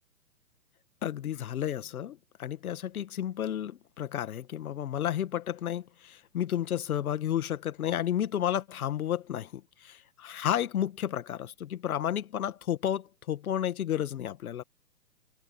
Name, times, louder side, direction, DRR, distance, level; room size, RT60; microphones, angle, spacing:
voice 1, 1.0-14.6, left 10 dB, 60° left, 1.9 m, -32 dB
hypercardioid pair, 130°, 48 cm